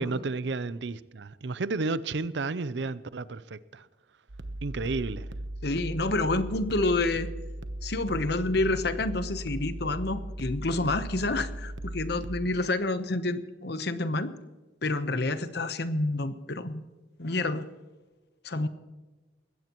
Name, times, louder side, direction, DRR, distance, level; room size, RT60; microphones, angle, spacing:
voice 1, 0.0-3.9 4.6-5.3, right 3 dB, 70° right, 0.6 m, -32 dB
sound 1, 4.3-12.5, right 1 dB, 85° right, 1.0 m, -37 dB
voice 2, 5.6-7.3 7.8-14.3 14.8-16.8 17.2-17.7 18.4-18.7, left 2 dB, 60° left, 1.0 m, -28 dB
21.0 x 16.0 x 3.1 m
head